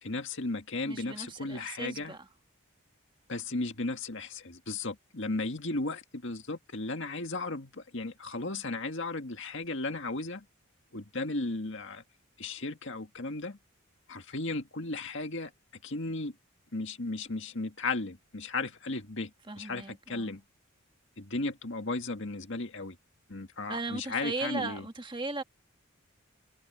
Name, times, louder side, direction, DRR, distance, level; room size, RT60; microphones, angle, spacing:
voice 1, 0.0-2.1 3.3-10.5 10.9-12.0 12.4-13.6 14.1-15.5 15.8-16.4 16.7-20.4 21.2-23.0 23.3-24.9, left 2 dB, 60° left, 2.0 m, -35 dB
voice 2, 0.9-2.3 19.5-20.3 23.7-25.4, right 3 dB, 20° right, 1.6 m, -37 dB
head